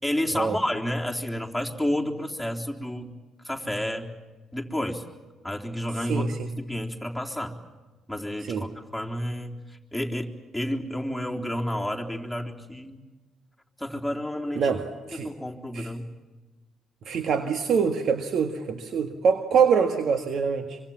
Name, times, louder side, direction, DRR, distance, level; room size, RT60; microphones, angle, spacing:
voice 1, 0.0-3.1 3.4-4.1 4.5-5.0 5.4-7.6 8.1-13.0 13.8-14.7 15.1-16.1, left 1 dB, ahead, 0 dB, 3.7 m, -30 dB
voice 2, 6.1-6.5 8.4-8.7 14.6-14.8 15.1-15.3 15.7-15.9 17.1-20.8, right 6 dB, 60° right, 7 dB, 1.7 m, -24 dB
25.0 x 25.0 x 7.3 m, 1.3 s
hypercardioid pair, 50°, 0 cm